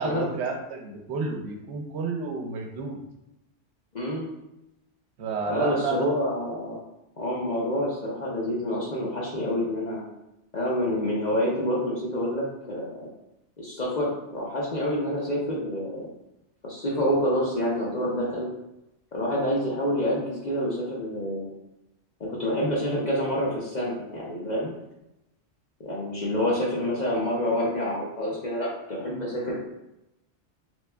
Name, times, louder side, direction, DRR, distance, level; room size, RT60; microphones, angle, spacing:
voice 1, 0.0-3.0 5.2-6.1, right 4 dB, 70° right, 3 dB, 0.9 m, -30 dB
voice 2, 3.9-4.3 5.5-6.8 7.2-10.0 10.5-13.1 13.6-16.1 16.6-18.5 19.1-21.5 22.2-24.7 25.8-29.6, equal, 45° left, -4 dB, 0.7 m, -27 dB
3.3 x 3.0 x 2.2 m, 0.89 s
omnidirectional pair, 1.2 m